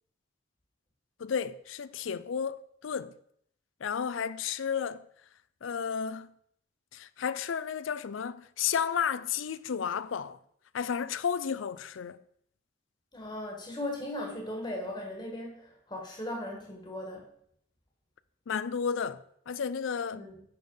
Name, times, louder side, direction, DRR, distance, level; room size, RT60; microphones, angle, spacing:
voice 1, 1.2-3.2 3.8-5.1 5.6-6.3 6.9-10.4 10.7-12.2 18.5-20.3, left 7 dB, 80° left, 0.4 m, -32 dB
voice 2, 13.1-17.2 20.1-20.3, left 1 dB, 20° left, 1.5 m, -38 dB
9.7 x 3.9 x 5.4 m
head